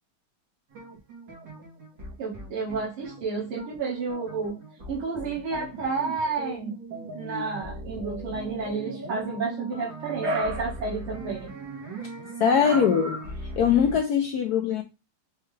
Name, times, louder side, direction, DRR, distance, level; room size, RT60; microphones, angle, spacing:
sound 1, 0.7-14.0, right 2 dB, 60° right, 2.4 m, -39 dB
voice 1, 2.2-4.6 4.9-6.8 7.1-11.5 12.6-13.2, right 4 dB, 85° right, 2.4 m, -30 dB
voice 2, 12.4-13.2 13.6-14.8, left 7 dB, 75° left, 0.8 m, -21 dB
5.6 x 2.8 x 3.1 m
omnidirectional pair, 2.3 m